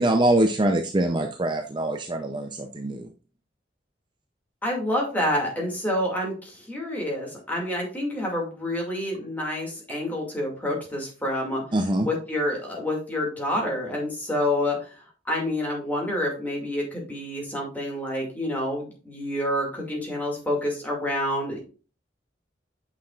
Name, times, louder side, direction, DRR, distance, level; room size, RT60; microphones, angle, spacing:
voice 1, 0.0-3.1 11.7-12.1, right 1 dB, 25° right, 5 dB, 0.5 m, -23 dB
voice 2, 4.6-11.6 12.0-15.0 15.3-21.6, left 1 dB, 10° left, -2 dB, 2.2 m, -28 dB
8.7 x 5.8 x 2.4 m, 0.36 s
head